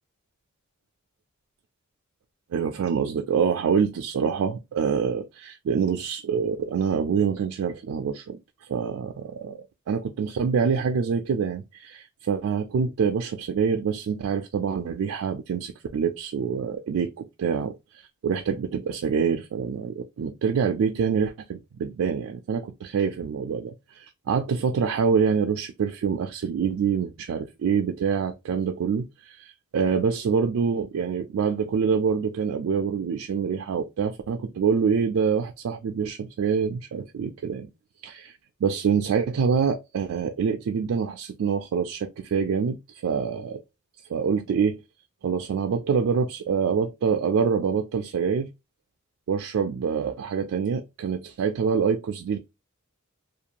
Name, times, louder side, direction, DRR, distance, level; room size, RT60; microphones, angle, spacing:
voice 1, 2.5-8.4 8.7-17.8 18.2-37.7 38.0-43.6 44.1-44.8 45.2-48.5 49.3-52.4, right 6 dB, 70° right, 0.3 m, -26 dB
2.5 x 2.2 x 2.8 m
head